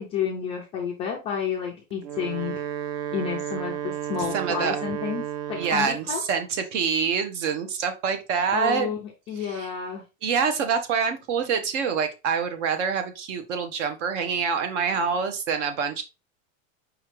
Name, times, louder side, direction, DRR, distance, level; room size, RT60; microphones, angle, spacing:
voice 1, 0.0-2.6 3.1-6.2 8.5-10.0 14.9-15.0, left 7 dB, 15° left, -1 dB, 0.3 m, -31 dB
Wind instrument woodwind instrument, 1.9-6.1, right 10 dB, 45° right, 0.5 m, -32 dB
voice 2, 4.3-4.8 5.6-8.9 9.4-9.7 10.2-16.0, right 6 dB, 60° right, 8 dB, 1.1 m, -26 dB
5.0 x 3.1 x 3.1 m, 0.27 s
supercardioid pair, 150°, 40 cm